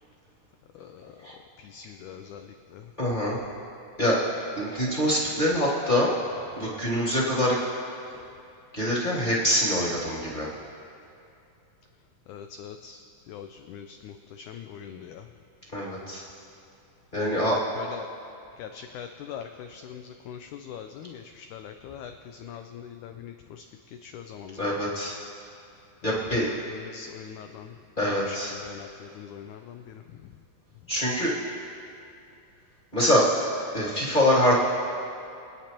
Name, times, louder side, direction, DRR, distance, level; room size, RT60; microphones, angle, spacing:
voice 1, 0.7-1.2 1.6-2.8 12.3-15.2 17.2-18.1 18.6-23.6 24.0-24.8 26.1-27.7 28.0-30.0, left 8 dB, 85° left, 6 dB, 1.7 m, -42 dB
voice 2, 3.0-3.4 4.0-4.2 4.6-6.1 6.5-7.6 8.7-10.5 15.7-16.2 17.1-17.6 24.6-25.1 26.0-26.5 28.0-28.5 30.9-31.3 32.9-33.3 33.7-34.5, equal, 15° left, -8 dB, 1.8 m, -24 dB
28.5 x 9.7 x 3.0 m, 2.6 s
omnidirectional pair, 4.1 m